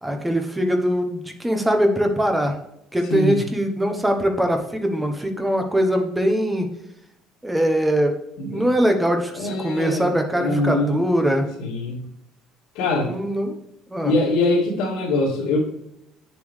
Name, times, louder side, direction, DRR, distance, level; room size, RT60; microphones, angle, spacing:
voice 1, 0.0-2.6 2.9-6.7 7.4-8.1 8.5-11.5 13.0-13.6 13.9-14.1, equal, 5° right, 4 dB, 1.0 m, -22 dB
voice 2, 9.4-10.1 10.3-11.0 11.6-12.0 12.7-13.2 14.0-15.6, left 2 dB, 85° left, -7 dB, 2.5 m, -23 dB
8.5 x 7.1 x 3.3 m, 0.82 s
cardioid pair, 175°, 0 cm